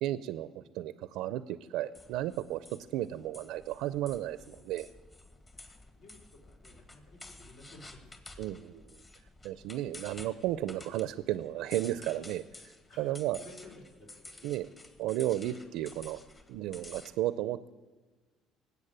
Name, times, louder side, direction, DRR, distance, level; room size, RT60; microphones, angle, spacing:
voice 1, 0.0-4.9 8.4-9.0 9.4-12.7 13.0-13.4 14.4-14.7 15.0-16.2 16.5-17.7, right 14 dB, 75° right, 15 dB, 0.5 m, -34 dB
sound 1, 1.9-17.1, left 2 dB, 30° left, 2.1 m, -52 dB
voice 2, 5.5-8.5 9.8-10.0 12.9-13.1 13.4-14.5, left 2 dB, 70° left, 1 dB, 3.7 m, -55 dB
19.0 x 8.2 x 8.8 m, 1.3 s
supercardioid pair, 85°, 0 cm